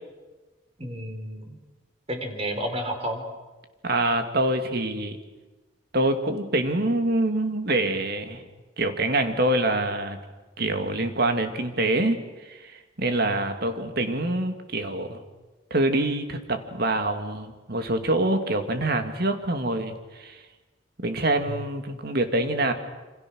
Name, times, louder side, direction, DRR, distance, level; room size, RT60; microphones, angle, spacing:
voice 1, 0.8-1.6 2.1-3.3 21.5-21.6, equal, 30° right, 4 dB, 4.2 m, -31 dB
voice 2, 3.8-5.2 5.9-8.4 8.8-10.2 10.6-12.2 12.5-15.2 15.7-20.4 21.0-22.7, right 2 dB, 55° right, 7 dB, 2.3 m, -25 dB
28.0 x 26.5 x 6.3 m, 1.2 s
head